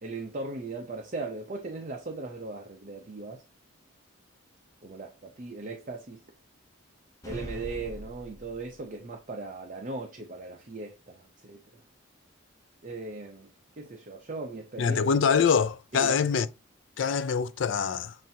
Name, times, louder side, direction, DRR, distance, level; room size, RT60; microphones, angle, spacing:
voice 1, 0.0-3.4 4.8-6.2 7.2-11.6 12.8-15.0 15.9-16.1, right 3 dB, 40° right, 0.6 m, -38 dB
sound 1, 7.2-8.9, equal, 15° left, 0.7 m, -41 dB
voice 2, 14.8-16.5 17.0-18.2, left 6 dB, 60° left, 0.4 m, -24 dB
7.3 x 2.7 x 2.7 m
head